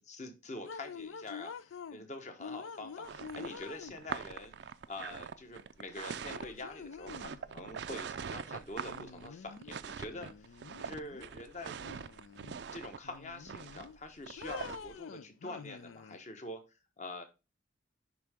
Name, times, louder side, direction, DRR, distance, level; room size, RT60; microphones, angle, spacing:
voice 1, 0.1-4.5 4.9-10.5 10.8-11.8 12.7-16.6 17.0-17.2, left 2 dB, 35° left, 6 dB, 1.1 m, -45 dB
sound 1, 0.6-2.0 2.4-4.3 5.7-5.8 6.3-7.4 8.8-9.7 10.1-11.3 11.8-12.7 13.0-14.0 14.4-16.2, left 6 dB, 85° left, 0.4 m, -47 dB
sound 2, 3.0-14.9, right 6 dB, 60° right, 0.4 m, -43 dB
10.5 x 3.7 x 3.5 m, 0.28 s
head